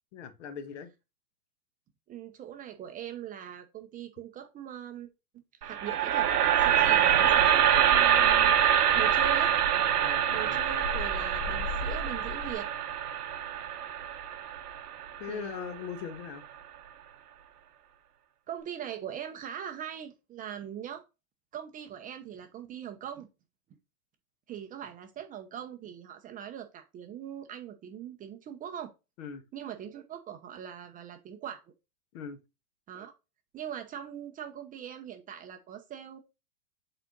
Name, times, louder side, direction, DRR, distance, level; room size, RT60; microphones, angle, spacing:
voice 1, 0.1-0.9 10.0-10.6 15.2-16.4 29.2-29.4 32.1-32.4, left 7 dB, 50° left, 1.6 m, -40 dB
voice 2, 2.1-5.1 5.6-6.3 6.6-9.5 10.3-12.7 15.3-15.8 18.5-21.0 21.5-23.3 24.5-28.9 29.5-31.6 32.9-33.1 33.5-36.2, right 9 dB, 20° right, 0.8 m, -41 dB
sound 1, 5.6-15.7, right 9 dB, 90° right, 1.5 m, -25 dB
sound 2, 6.6-12.5, left 3 dB, 30° left, 2.0 m, -41 dB
7.5 x 4.2 x 3.9 m
hypercardioid pair, 140°, 45 cm